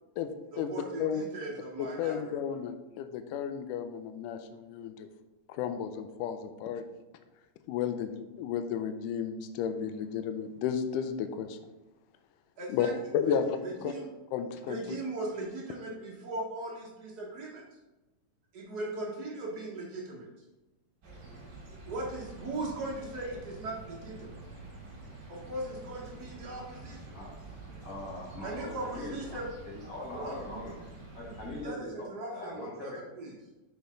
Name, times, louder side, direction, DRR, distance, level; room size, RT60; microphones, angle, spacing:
voice 1, 0.5-2.4 12.6-13.3 13.6-14.1 14.7-17.6 18.5-20.3 21.8-24.4 25.3-27.2 28.4-29.5 30.1-30.4 31.6-33.3, right 2 dB, 85° right, -3 dB, 0.8 m, -39 dB
voice 2, 1.8-5.1 5.5-6.8 7.7-11.6 12.7-12.9 13.1-13.5 13.8-13.9 14.3-14.8, left 8 dB, 80° left, 8 dB, 2.0 m, -33 dB
sound 1, 21.0-31.6, right 2 dB, 45° right, 1.6 m, -47 dB
voice 3, 27.8-29.4 29.6-33.0, left 1 dB, 40° left, -4 dB, 1.3 m, -41 dB
6.3 x 5.5 x 3.8 m, 1.0 s
omnidirectional pair, 3.9 m